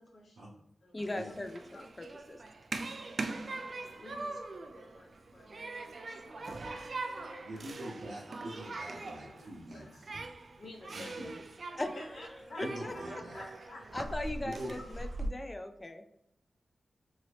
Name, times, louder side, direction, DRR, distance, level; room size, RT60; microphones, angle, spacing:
voice 1, 0.0-1.8 3.4-7.9 9.0-10.2 10.6-11.4 12.0-12.7 12.9-13.1 13.3-13.8 14.7-14.9, left 1 dB, 65° left, 0 dB, 0.8 m, -52 dB
voice 2, 0.9-2.4 11.8-12.0 12.6-13.2 13.9-16.0, left 1 dB, 20° left, 6 dB, 0.4 m, -39 dB
Human group actions, 1.0-15.3, right 2 dB, 55° right, 0.3 m, -42 dB
voice 3, 7.5-10.1 10.9-11.3 12.6-13.4 14.4-14.8, right 1 dB, 80° right, -8 dB, 0.8 m, -43 dB
2.8 x 2.7 x 3.1 m, 0.77 s
wide cardioid pair, 115°, 0 cm